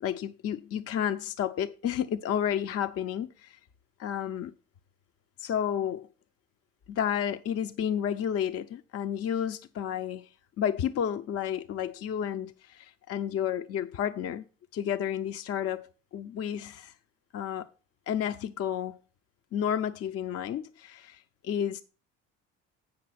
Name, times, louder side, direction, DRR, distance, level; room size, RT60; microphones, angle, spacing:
voice 1, 0.0-3.6 4.0-4.5 5.4-6.1 6.9-10.3 10.6-14.4 14.7-16.9 17.3-17.7 18.1-19.0 19.5-21.8, left 9 dB, 40° left, 0.6 m, -31 dB
8.7 x 6.1 x 5.8 m
hypercardioid pair, 60°, 36 cm